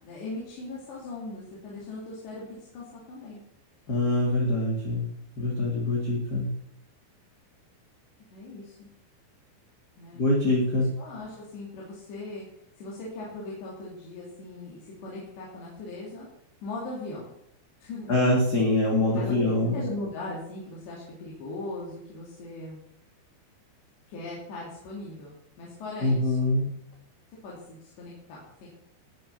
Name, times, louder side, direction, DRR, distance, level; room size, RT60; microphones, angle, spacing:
voice 1, 0.0-3.4 8.3-8.9 10.0-10.2 11.0-12.5 12.8-16.3 16.6-17.3 17.8-18.2 19.2-19.4 19.7-22.8 24.1-26.5 27.4-28.7, left 2 dB, 70° left, -5 dB, 5.2 m, -39 dB
voice 2, 3.9-5.1 5.4-6.4 10.1-10.9 18.1-19.8 26.0-26.7, left 1 dB, 25° left, -4 dB, 3.1 m, -24 dB
19.0 x 7.9 x 7.1 m, 0.77 s
omnidirectional pair, 5.1 m